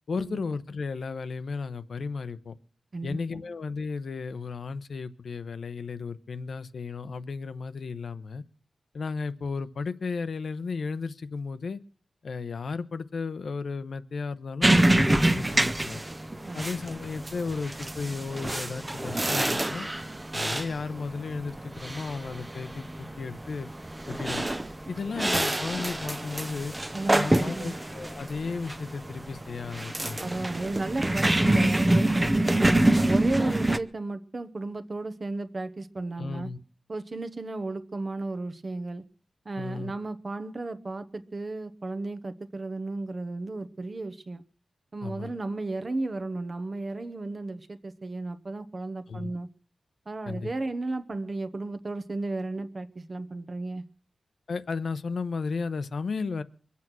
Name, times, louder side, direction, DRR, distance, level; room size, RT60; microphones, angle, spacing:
voice 1, 0.1-2.5 3.0-8.4 8.9-11.8 12.2-16.0 16.5-19.9 20.3-23.7 24.1-24.5 24.9-26.7 27.1-30.3 32.6-32.9 36.2-36.6 39.6-39.9 45.0-45.3 49.1-49.3 50.2-50.5 54.5-56.4, left 4 dB, 65° left, 12 dB, 0.9 m, -34 dB
voice 2, 2.9-3.4 16.4-16.7 26.9-27.8 30.2-32.1 32.6-36.5 36.9-39.0 39.4-44.4 44.9-49.5 50.1-53.8, right 2 dB, 35° right, 10 dB, 1.0 m, -34 dB
sound 1, 14.6-33.8, right 1 dB, 15° right, 0.7 m, -27 dB
23.0 x 8.5 x 6.2 m, 0.41 s
wide cardioid pair, 145°, 0 cm